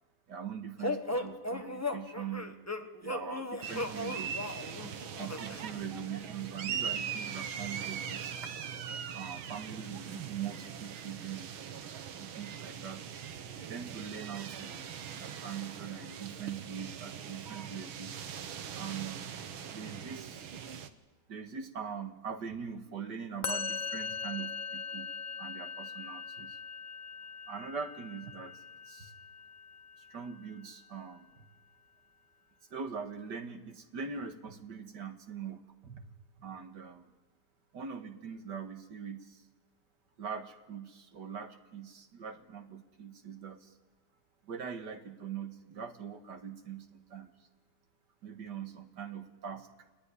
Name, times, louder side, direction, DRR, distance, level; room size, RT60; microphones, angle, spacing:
voice 1, 0.3-2.6 3.0-4.4 5.1-8.3 9.1-11.5 12.1-13.2 13.6-14.9 15.1-18.2 18.8-19.3 19.7-20.8 21.3-26.6 27.5-29.1 30.0-31.5 32.7-36.0 36.4-37.1 37.7-39.4 40.2-43.7 44.4-47.3 48.2-49.7, right 7 dB, 60° right, 7 dB, 2.3 m, -42 dB
sound 1, 0.8-5.6, left 2 dB, 10° left, 0.9 m, -36 dB
sound 2, 3.6-20.9, right 7 dB, 85° right, 2.1 m, -41 dB
Musical instrument, 23.4-30.7, left 5 dB, 45° left, 0.5 m, -41 dB
29.0 x 19.5 x 9.8 m, 1.3 s
omnidirectional pair, 2.2 m